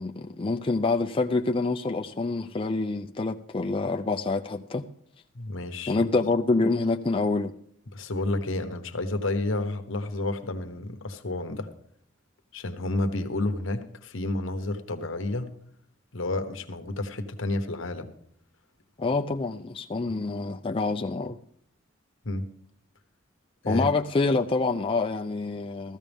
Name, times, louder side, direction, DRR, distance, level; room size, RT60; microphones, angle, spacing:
voice 1, 0.0-4.8 5.9-7.5 19.0-21.4 23.7-26.0, left 3 dB, 25° left, 0.4 m, -26 dB
voice 2, 5.3-6.1 7.9-11.7 12.5-15.5 16.1-18.1 22.2-22.5 23.6-23.9, left 2 dB, 70° left, 1.2 m, -30 dB
15.5 x 14.0 x 3.5 m
head